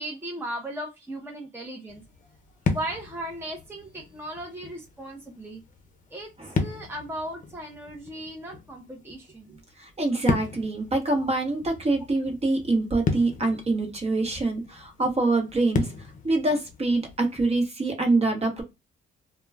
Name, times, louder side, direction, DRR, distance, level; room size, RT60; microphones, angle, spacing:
voice 1, 0.0-2.0 2.7-5.6 6.1-6.3 6.6-9.6 11.2-11.3, right 1 dB, 10° right, 0 dB, 0.7 m, -37 dB
sound 1, 1.9-17.7, left 4 dB, 40° left, 0.6 m, -35 dB
voice 2, 9.8-18.6, right 2 dB, 30° right, 3 dB, 1.0 m, -25 dB
2.2 x 2.2 x 3.3 m, 0.23 s
cardioid pair, 90°, 20 cm